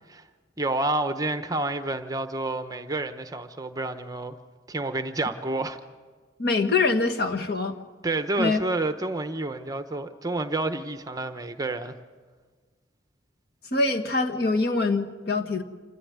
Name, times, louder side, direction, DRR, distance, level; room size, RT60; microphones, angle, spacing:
voice 1, 0.6-4.4 4.7-5.8 8.0-12.0, right 2 dB, 20° right, 9 dB, 0.9 m, -29 dB
voice 2, 6.4-7.7 8.4-8.6 13.7-15.6, left 3 dB, 55° left, 4 dB, 1.6 m, -24 dB
27.0 x 14.0 x 9.5 m, 1.5 s
head